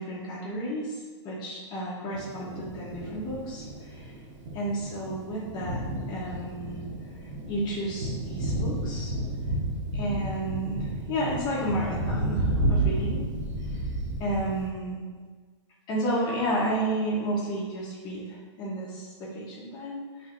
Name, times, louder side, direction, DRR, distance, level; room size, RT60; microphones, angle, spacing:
voice 1, 0.0-4.1 4.5-5.8 6.1-6.8 7.2-9.1 9.9-13.3 14.2-15.0 15.9-20.3, right 1 dB, 25° left, -5 dB, 0.9 m, -32 dB
Thunder, 2.1-14.7, right 1 dB, 80° right, 1.0 m, -31 dB
6.1 x 3.4 x 2.5 m, 1.5 s
hypercardioid pair, 145°, 16 cm